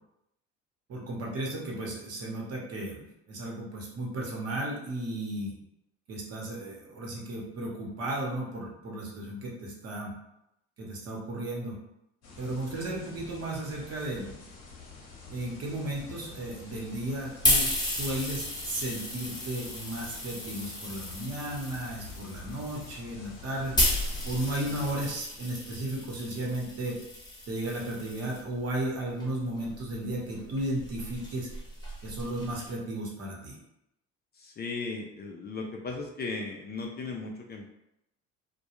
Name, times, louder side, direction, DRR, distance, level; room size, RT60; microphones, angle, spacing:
voice 1, 0.9-5.5 6.1-10.1 10.8-11.8 12.4-14.5 15.3-23.8 24.2-27.0 27.5-31.5 32.0-33.6, right 1 dB, 50° right, -2 dB, 1.0 m, -34 dB
sound 1, 12.2-24.9, left 4 dB, 55° left, 0.8 m, -48 dB
sound 2, 17.0-28.4 29.2-32.7, left 1 dB, 15° left, 0.9 m, -33 dB
voice 2, 34.3-37.7, left 3 dB, 30° left, 1 dB, 0.4 m, -36 dB
2.3 x 2.2 x 2.9 m, 0.82 s
supercardioid pair, 80°, 32 cm